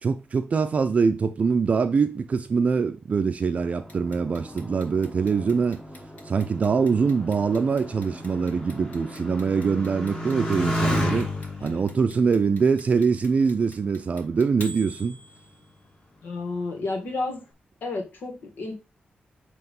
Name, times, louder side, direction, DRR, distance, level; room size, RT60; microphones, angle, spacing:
voice 1, 0.0-5.8 6.2-11.3 11.6-15.2, right 5 dB, 45° right, 0.5 m, -23 dB
sound 1, 3.5-9.8, equal, 5° left, 0.9 m, -45 dB
Clock, 3.9-15.9, left 1 dB, 50° left, 2.0 m, -46 dB
Motorcycle, 4.9-13.9 14.7-15.3, left 1 dB, 25° left, 1.8 m, -33 dB
voice 2, 16.2-17.4 17.8-18.7, left 3 dB, 75° left, 1.9 m, -31 dB
7.9 x 3.1 x 5.3 m
wide cardioid pair, 140°, 3 cm